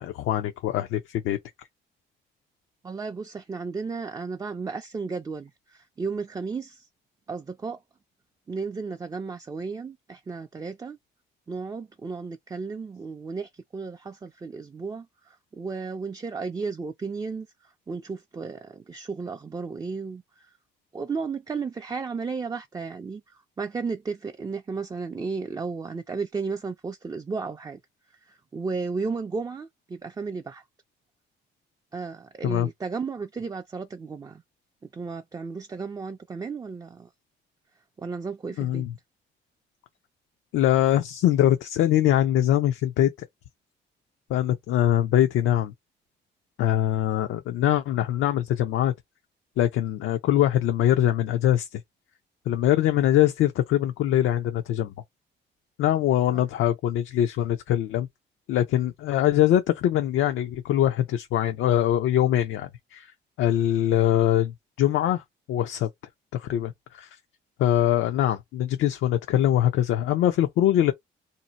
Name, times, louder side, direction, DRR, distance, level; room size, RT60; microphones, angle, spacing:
voice 1, 0.0-1.4 32.4-32.7 38.6-38.9 40.5-43.1 44.3-45.7 46.6-48.9 49.6-51.7 52.5-54.9 55.8-58.1 58.5-63.1 63.4-65.2 65.5-65.9 66.3-67.1 67.6-70.9, left 12 dB, 80° left, 0.5 m, -23 dB
voice 2, 2.8-6.9 7.3-7.8 8.5-11.0 11.5-20.5 20.9-27.8 28.2-30.6 31.9-34.4 34.9-37.1 38.0-38.8 56.3-56.4, right 4 dB, 20° right, 0.4 m, -34 dB
2.7 x 2.1 x 4.0 m
cardioid pair, 90°, 20 cm